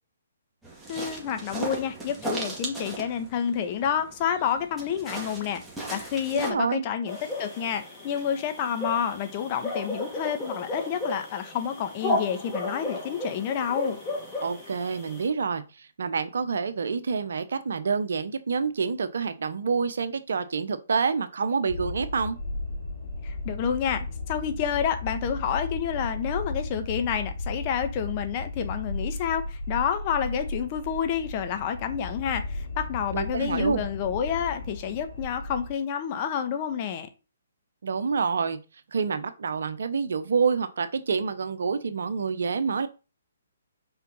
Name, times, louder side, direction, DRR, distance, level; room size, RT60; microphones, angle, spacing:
sound 1, 0.6-6.5, right 2 dB, 5° right, 2.2 m, -37 dB
voice 1, 0.9-5.6 5.9-14.0 23.2-37.1, left 8 dB, 35° left, 1.2 m, -29 dB
voice 2, 6.3-6.8 14.4-22.4 33.1-33.8 37.8-38.6 38.9-42.9, right 5 dB, 65° right, 1.0 m, -27 dB
sound 2, 7.1-15.3, left 2 dB, 15° left, 3.1 m, -34 dB
sound 3, 21.7-35.7, left 2 dB, 75° left, 3.6 m, -35 dB
5.7 x 4.8 x 5.5 m
figure-of-eight pair, 135°, 0 cm